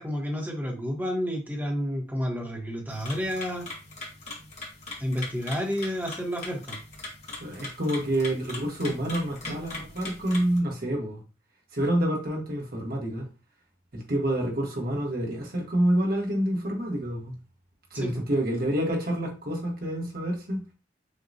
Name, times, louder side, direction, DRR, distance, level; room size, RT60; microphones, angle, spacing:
voice 1, 0.0-3.7 5.0-6.8 17.9-18.2, equal, 10° right, 0.9 m, -30 dB
sound 1, 2.9-10.6, left 2 dB, 35° left, 1.3 m, -40 dB
voice 2, 7.4-11.2 11.7-13.3 13.9-17.3 17.9-20.6, right 1 dB, 50° right, 1.3 m, -28 dB
6.5 x 2.3 x 2.7 m
head